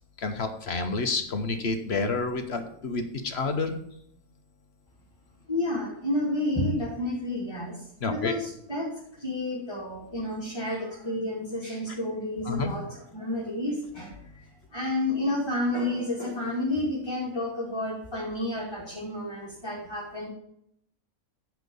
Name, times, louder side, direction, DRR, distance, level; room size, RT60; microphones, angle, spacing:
voice 1, 0.2-3.8 8.0-8.3 12.5-12.7, left 3 dB, 50° left, 7 dB, 1.2 m, -29 dB
voice 2, 5.5-7.8 8.1-8.9 9.2-20.3, left 1 dB, 20° left, -6 dB, 2.4 m, -30 dB
10.5 x 4.7 x 6.9 m, 0.72 s
omnidirectional pair, 1.5 m